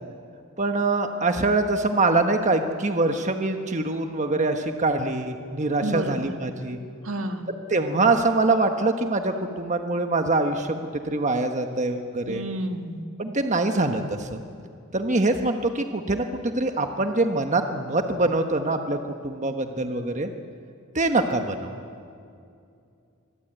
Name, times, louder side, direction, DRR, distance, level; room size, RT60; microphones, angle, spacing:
voice 1, 0.6-6.8 7.7-10.7 11.1-12.4 13.2-14.4 14.9-19.0 19.2-20.3 20.9-21.7, right 2 dB, 35° right, 5 dB, 1.3 m, -24 dB
voice 2, 5.8-6.3 7.0-7.5 12.3-13.1, right 1 dB, 70° right, 5 dB, 1.9 m, -30 dB
25.5 x 21.5 x 9.0 m, 2.5 s
head